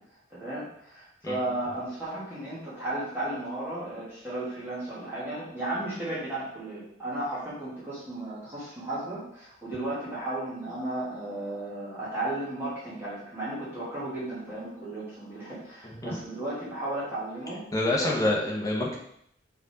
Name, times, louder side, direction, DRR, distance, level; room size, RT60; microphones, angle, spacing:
voice 1, 0.3-17.6 18.0-18.2, right 1 dB, 15° right, -11 dB, 2.7 m, -34 dB
voice 2, 17.7-19.0, left 1 dB, 20° left, -3 dB, 1.2 m, -27 dB
6.4 x 4.2 x 3.8 m, 0.72 s
head